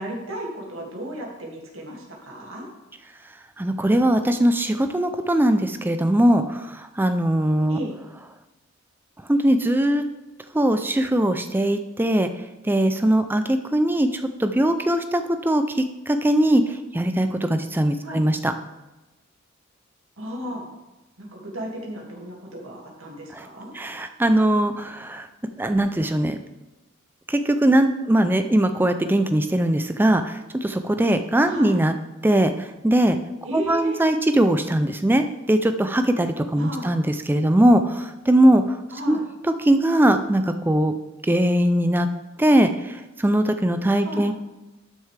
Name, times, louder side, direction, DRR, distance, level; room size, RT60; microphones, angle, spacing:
voice 1, 0.0-2.7 7.7-8.0 18.0-18.2 20.2-20.7 21.2-23.7 31.5-31.8 33.4-34.0 36.6-36.9 38.9-39.2 44.0-44.3, right 1 dB, 60° right, -2 dB, 2.2 m, -34 dB
voice 2, 3.6-6.6 7.0-7.8 9.3-10.0 10.5-12.3 12.7-18.5 23.3-23.4 23.7-25.3 25.6-26.4 27.3-31.9 32.2-32.5 32.8-33.2 33.5-38.6 39.1-39.2 39.6-40.9 41.3-42.1 42.4-42.7 43.2-44.3, right 1 dB, 10° right, 8 dB, 0.3 m, -20 dB
12.0 x 6.5 x 3.3 m, 1.1 s
head